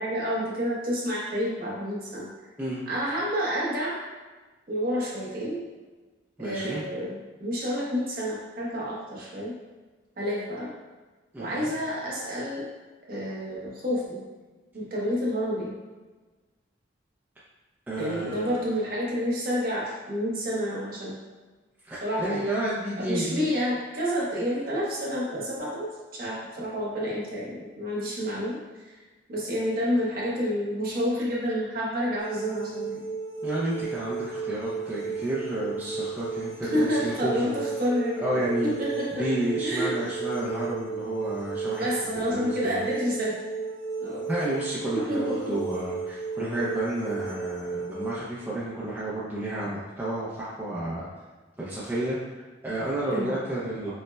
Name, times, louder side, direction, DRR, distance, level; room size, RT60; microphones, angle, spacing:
voice 1, 0.0-2.3 2.9-4.0 4.7-5.6 6.4-9.6 10.2-10.7 11.4-12.7 13.1-14.2 14.7-15.8 18.0-21.2 22.0-22.5 23.0-28.6 28.8-28.9 29.3-33.1 36.6-39.3 39.6-40.0 41.8-43.4 44.0-44.3 44.9-45.6 53.1-53.4, equal, 45° right, -5 dB, 0.8 m, -29 dB
voice 2, 6.4-6.8 11.3-11.7 17.9-18.7 21.8-23.5 33.4-37.6 38.2-38.8 39.1-41.9 42.2-42.8 44.3-51.1 51.6-53.9, right 1 dB, 10° right, -9 dB, 0.4 m, -31 dB
sound 1, 32.2-48.1, right 4 dB, 70° left, 0.7 m, -34 dB
5.2 x 2.1 x 2.2 m, 1.3 s
head